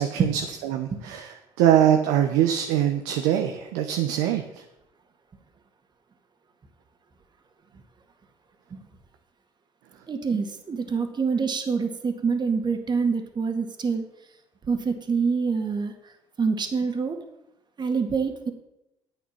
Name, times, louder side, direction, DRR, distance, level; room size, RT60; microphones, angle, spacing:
voice 1, 0.0-4.4, right 10 dB, 80° right, 5 dB, 0.9 m, -23 dB
voice 2, 10.1-14.0 14.7-15.9 16.4-17.2 17.8-18.5, right 5 dB, 40° right, 6 dB, 2.0 m, -26 dB
10.5 x 8.4 x 5.8 m, 0.87 s
hypercardioid pair, 65°, 12 cm